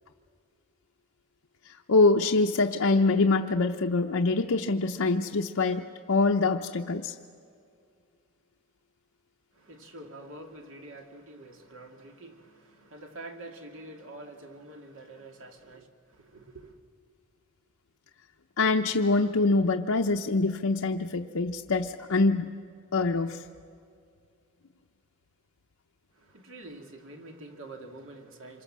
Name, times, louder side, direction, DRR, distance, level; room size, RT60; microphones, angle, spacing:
voice 1, 1.7-7.1 18.6-22.4 22.9-23.4, left 3 dB, 75° left, 0.8 m, -24 dB
voice 2, 9.5-16.8 26.1-28.6, right 2 dB, 65° right, 2.3 m, -46 dB
27.0 x 24.0 x 7.4 m
head